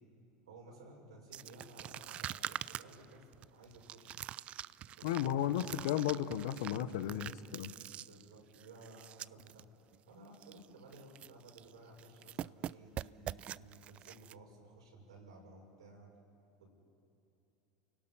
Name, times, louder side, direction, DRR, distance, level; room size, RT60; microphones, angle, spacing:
voice 1, 0.5-4.2 4.9-5.8 7.0-7.1 8.1-9.6 10.1-16.1 16.6-16.7, right 2 dB, 90° right, -1 dB, 6.1 m, -56 dB
sound 1, 1.3-9.6 9.9-10.0 10.3-10.7 10.9-11.7 12.0-14.3, right 12 dB, 45° right, 0.4 m, -45 dB
voice 2, 5.0-7.7, left 11 dB, 75° left, 12 dB, 1.1 m, -34 dB
29.5 x 18.0 x 5.8 m, 2.8 s
hypercardioid pair, 95°, 3 cm